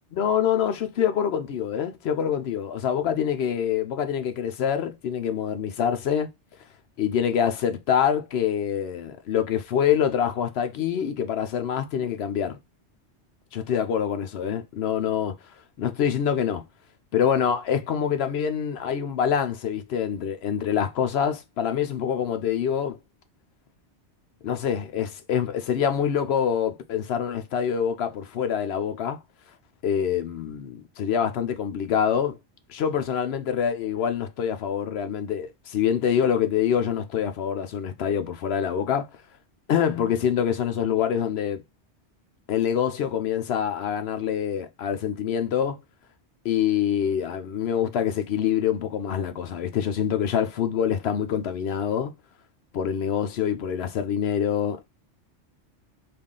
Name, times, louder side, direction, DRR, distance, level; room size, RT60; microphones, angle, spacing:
voice 1, 0.1-6.3 7.0-12.6 13.5-15.3 15.8-16.6 17.1-23.0 24.4-29.2 29.8-32.4 32.7-39.1 39.7-41.6 42.5-45.8 46.4-52.1 52.7-54.8, left 8 dB, 70° left, 0.8 m, -25 dB
3.5 x 2.5 x 3.6 m
omnidirectional pair, 1.2 m